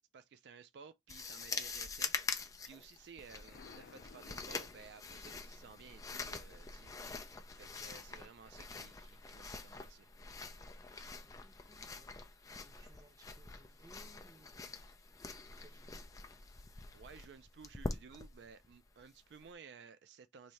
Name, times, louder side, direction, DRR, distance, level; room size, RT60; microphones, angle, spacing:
voice 1, 0.1-6.9 7.5-10.1 16.9-20.5, right 6 dB, 70° right, 0.3 m, -56 dB
sound 1, 1.1-19.5, left 4 dB, 20° left, 0.4 m, -45 dB
Explosion, 3.5-5.3, left 5 dB, 85° left, 0.4 m, -58 dB
voice 2, 11.2-12.2 12.5-14.7 15.5-16.0, right 1 dB, 20° right, 0.7 m, -64 dB
3.1 x 2.6 x 4.3 m
head